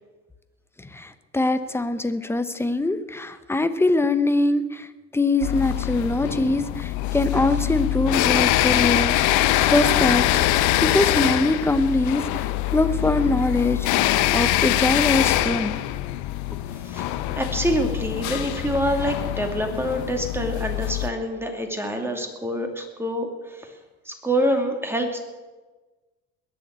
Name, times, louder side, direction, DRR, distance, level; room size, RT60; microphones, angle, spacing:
voice 1, 0.9-4.9 5.1-10.2 10.8-13.9 14.3-15.8, left 2 dB, 10° left, 11 dB, 0.9 m, -23 dB
sound 1, 5.4-21.1, left 14 dB, 85° left, 0.9 m, -23 dB
voice 2, 16.7-23.7 24.1-25.2, equal, 10° right, 3 dB, 2.6 m, -26 dB
21.0 x 7.4 x 8.2 m, 1.3 s
cardioid pair, 120°, 29 cm